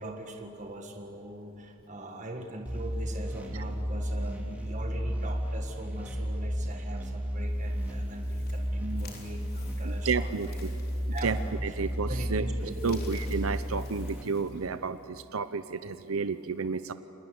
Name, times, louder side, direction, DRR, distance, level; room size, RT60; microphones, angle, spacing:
voice 1, 0.0-10.6 11.1-11.4 11.7-11.8 12.1-13.0, right 1 dB, 35° right, 3 dB, 1.8 m, -41 dB
sound 1, 2.7-14.2, equal, 5° right, 3.7 m, -33 dB
sound 2, 7.4-15.1, left 5 dB, 45° left, 4.0 m, -54 dB
voice 2, 9.8-10.7 11.2-11.4 11.6-12.4 12.8-16.9, right 5 dB, 80° right, 12 dB, 0.7 m, -31 dB
30.0 x 20.5 x 9.6 m, 2.9 s
head